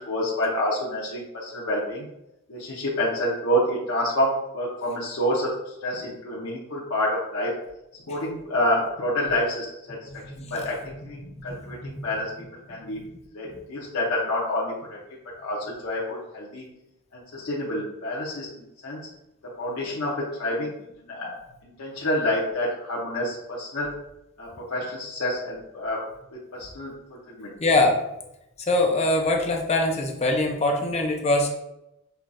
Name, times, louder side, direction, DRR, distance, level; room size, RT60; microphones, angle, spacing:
voice 1, 0.0-2.1 2.5-5.5 5.8-7.5 8.1-10.0 10.4-10.8 11.0-12.3 12.7-13.0 13.3-15.0 15.4-16.6 17.1-18.5 18.8-19.0 19.6-20.7 21.0-21.3 21.6-23.9 24.4-26.0 26.5-26.9 27.3-27.5, left 1 dB, 75° left, -6 dB, 0.8 m, -28 dB
voice 2, 10.1-10.6 11.2-12.1 12.9-13.0 13.4-13.6 27.6-28.0 28.6-31.5, left 2 dB, 30° left, 2 dB, 0.5 m, -24 dB
5.6 x 2.3 x 2.5 m, 0.88 s
head